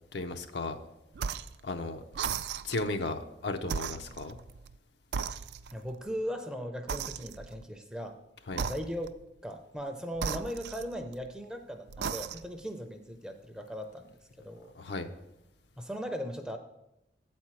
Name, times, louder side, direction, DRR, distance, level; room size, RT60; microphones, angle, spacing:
voice 1, 0.1-0.8 1.6-2.0 2.6-4.4 8.5-8.6 14.8-15.1, left 2 dB, 75° left, 7 dB, 0.6 m, -35 dB
sound 1, 1.1-1.6 2.1-2.9 3.6-4.8 5.1-5.9 6.9-7.6 8.5-9.2 10.1-11.3 11.9-12.6, right 6 dB, 70° right, 0.3 m, -36 dB
voice 2, 5.7-8.2 8.6-9.1 9.4-14.7 15.8-16.6, equal, 5° right, 5 dB, 0.5 m, -38 dB
8.0 x 4.3 x 6.0 m, 0.89 s
head